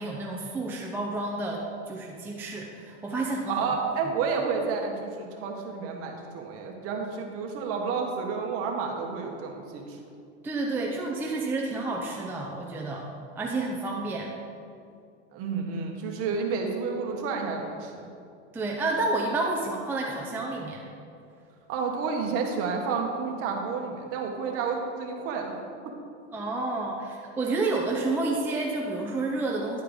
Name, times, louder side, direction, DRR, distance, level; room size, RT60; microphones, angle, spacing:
voice 1, 0.0-3.7 10.4-13.1 13.4-14.3 18.5-20.8 24.4-24.5 26.3-29.8, right 2 dB, 5° right, -2 dB, 0.5 m, -30 dB
voice 2, 3.5-10.0 15.3-18.1 21.7-25.9 26.3-26.4, right 5 dB, 40° right, 2 dB, 1.3 m, -30 dB
10.5 x 4.6 x 5.1 m, 2.5 s
supercardioid pair, 135°, 34 cm